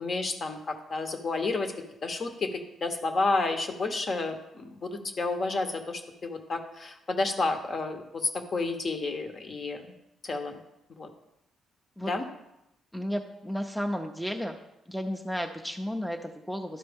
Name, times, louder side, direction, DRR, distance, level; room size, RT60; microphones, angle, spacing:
voice 1, 0.0-1.7 2.0-9.9 10.2-10.6 11.0-11.1 12.1-12.2, left 3 dB, 45° left, 6 dB, 0.9 m, -31 dB
voice 2, 12.9-14.6 14.9-16.8, equal, ahead, 3 dB, 0.5 m, -33 dB
11.5 x 4.3 x 3.5 m, 0.89 s
cardioid pair, 100°, 0 cm